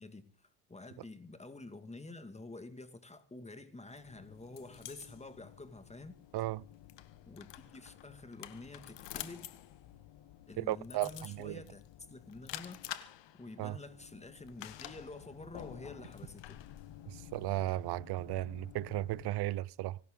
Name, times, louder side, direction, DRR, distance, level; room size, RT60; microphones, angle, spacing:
voice 1, 0.0-6.2 7.3-9.5 10.5-11.8 12.1-12.8 13.4-16.6, left 2 dB, 15° left, 2.1 m, -49 dB
sound 1, 3.9-19.3, left 13 dB, 65° left, 1.6 m, -50 dB
voice 2, 6.3-6.6 10.6-11.6 13.6-13.8 17.1-20.0, right 16 dB, 55° right, 0.7 m, -35 dB
25.0 x 12.0 x 3.8 m
supercardioid pair, 90°, 47 cm